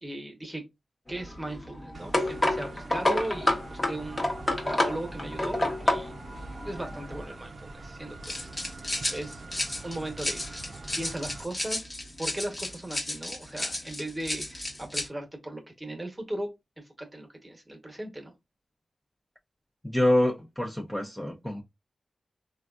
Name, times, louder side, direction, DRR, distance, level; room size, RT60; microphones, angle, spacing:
voice 1, 0.0-0.6 1.1-4.3 4.6-6.2 6.6-8.5 8.8-9.4 9.8-10.7 11.0-11.8 12.2-18.3, right 1 dB, 20° right, 1.1 m, -38 dB
sound 1, 1.1-7.3 8.2-15.1, left 1 dB, 30° left, 1.0 m, -31 dB
sound 2, 1.9-11.5, right 2 dB, 65° right, 0.5 m, -44 dB
voice 2, 19.8-21.6, left 1 dB, 15° left, 0.7 m, -26 dB
3.3 x 2.3 x 2.4 m
cardioid pair, 40°, 0 cm